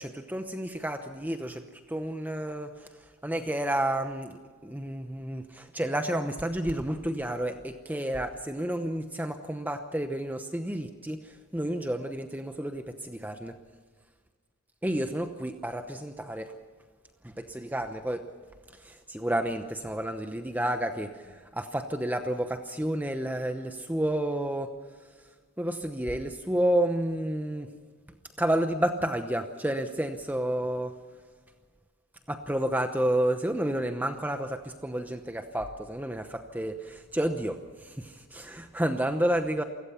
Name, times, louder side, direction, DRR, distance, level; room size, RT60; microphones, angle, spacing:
voice 1, 0.0-1.6 1.9-2.9 3.2-13.5 14.8-16.5 17.2-18.2 18.8-24.7 25.6-27.7 28.4-31.0 32.3-39.6, right 1 dB, 10° right, 7 dB, 0.8 m, -30 dB
28.5 x 17.0 x 5.8 m, 1.5 s
head